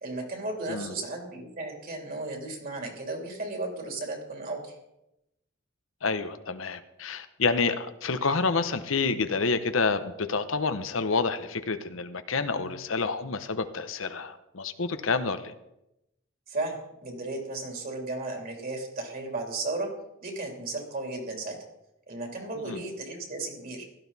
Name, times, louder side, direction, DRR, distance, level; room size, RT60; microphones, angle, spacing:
voice 1, 0.0-4.7 12.5-12.8 16.5-19.9 20.2-21.6 22.1-23.9, right 2 dB, 45° right, 2 dB, 3.3 m, -35 dB
voice 2, 6.0-15.5 22.7-22.8, left 4 dB, 70° left, 10 dB, 0.9 m, -28 dB
16.5 x 12.5 x 4.1 m, 0.87 s
head